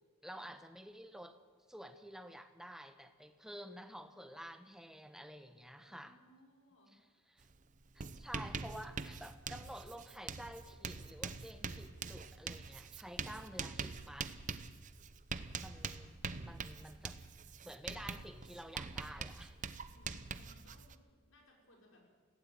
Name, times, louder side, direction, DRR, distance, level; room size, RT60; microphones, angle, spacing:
voice 1, 0.2-1.4 1.7-6.2 6.9-7.5 7.9-14.3 15.6-16.2 16.4-17.2 17.6-19.6, equal, ahead, 8 dB, 1.1 m, -50 dB
voice 2, 3.4-4.2 5.8-7.0 16.2-17.0 19.9-22.0, left 1 dB, 75° left, 0 dB, 5.7 m, -66 dB
Writing, 7.4-7.6 7.8-20.9, right 5 dB, 35° right, 0.8 m, -44 dB
20.5 x 16.5 x 9.0 m, 1.5 s
head